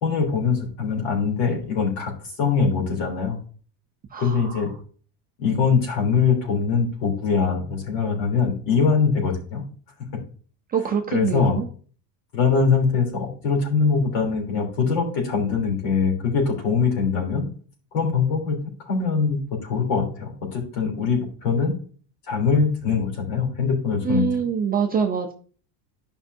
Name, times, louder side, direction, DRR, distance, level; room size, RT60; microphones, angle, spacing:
voice 1, 0.0-2.1 2.4-3.4 4.2-4.7 5.4-9.6 11.1-11.6 12.3-17.5 17.9-18.6 18.8-21.7 22.3-24.2, left 5 dB, 60° left, 1 dB, 3.3 m, -22 dB
voice 2, 4.1-4.6 10.7-11.7 24.0-25.3, right 6 dB, 20° right, 2 dB, 0.5 m, -25 dB
12.0 x 5.4 x 2.7 m, 0.43 s
cardioid pair, 155°, 48 cm